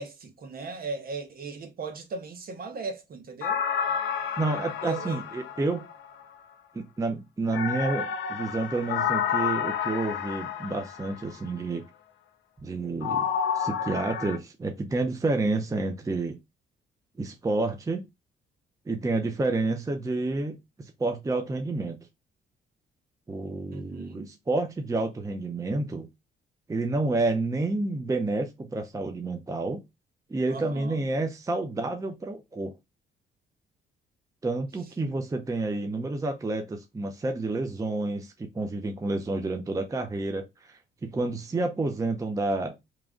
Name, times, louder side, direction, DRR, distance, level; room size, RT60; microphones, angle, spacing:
voice 1, 0.0-3.6 4.8-5.2 23.7-24.3 30.5-31.0, right 4 dB, 50° right, 0.8 m, -37 dB
sound 1, 3.4-6.2 7.5-11.3 13.0-14.4, left 7 dB, 75° left, 0.6 m, -30 dB
voice 2, 4.4-5.8 6.7-11.8 12.6-13.3 13.6-16.4 17.2-18.0 18.9-22.0 23.3-26.1 26.7-29.8 30.3-32.7 34.4-42.7, right 2 dB, 15° right, 0.5 m, -29 dB
3.1 x 2.4 x 3.7 m
cardioid pair, 90°, 20 cm